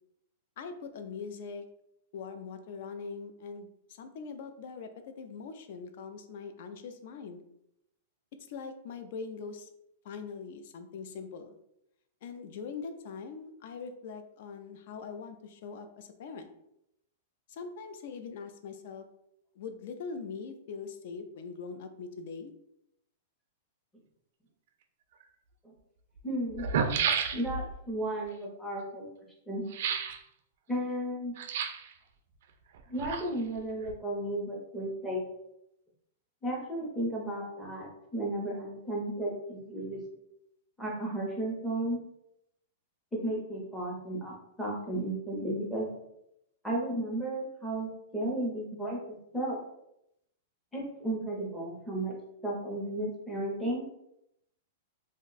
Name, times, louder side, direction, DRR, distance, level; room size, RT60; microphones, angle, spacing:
voice 1, 0.6-1.6 2.1-7.4 8.5-9.7 10.0-11.6 12.2-16.5 17.5-19.0 19.5-22.5, left 5 dB, 50° left, 8 dB, 0.3 m, -42 dB
sound 1, 25.2-25.3 26.2-26.3 26.5-27.7 29.7-30.2 31.4-31.9 32.7-33.5 33.8-33.9, right 6 dB, 50° right, 0.3 m, -31 dB
voice 2, 26.2-26.7 27.3-29.1 29.5-29.6 30.7-31.3 32.9-35.2 36.4-40.0 40.8-42.0 43.2-45.9 46.6-49.0 49.3-49.6 50.7-52.1 52.4-53.8, right 1 dB, ahead, -5 dB, 0.6 m, -34 dB
2.5 x 2.1 x 3.8 m, 0.80 s
supercardioid pair, 175°, 0 cm